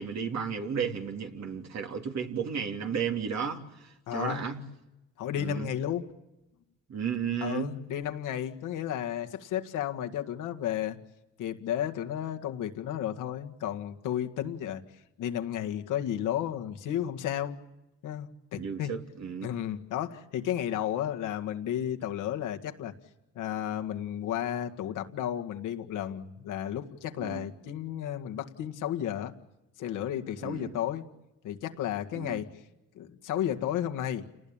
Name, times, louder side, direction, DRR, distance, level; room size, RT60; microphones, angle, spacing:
voice 1, 0.0-4.6 5.4-5.7 6.9-7.7 18.6-19.5 27.2-27.4 30.4-30.7 32.1-32.4, right 7 dB, 60° right, 3.2 m, -33 dB
voice 2, 4.1-4.5 5.2-6.1 7.4-11.0 11.4-14.8 15.2-17.6 18.0-18.9 19.4-22.9 23.4-29.3 29.8-31.1 31.4-32.6 32.9-34.3, left 10 dB, 90° left, 2.0 m, -33 dB
29.0 x 19.5 x 8.9 m
cardioid pair, 90°, 30 cm